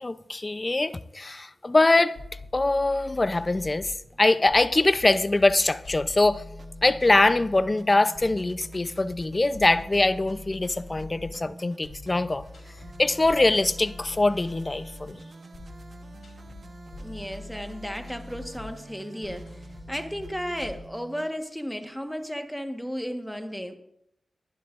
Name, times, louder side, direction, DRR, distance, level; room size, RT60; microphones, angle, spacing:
voice 1, 0.0-2.2 2.5-6.4 6.8-12.4 13.0-15.2, left 2 dB, 30° left, 0.6 m, -23 dB
sound 1, 2.0-20.8, left 2 dB, 85° left, 4.1 m, -45 dB
sound 2, 6.3-21.3, right 3 dB, 60° right, 1.2 m, -47 dB
voice 2, 16.9-23.8, equal, ahead, 1.4 m, -34 dB
21.5 x 11.0 x 2.6 m
cardioid pair, 55°, 0 cm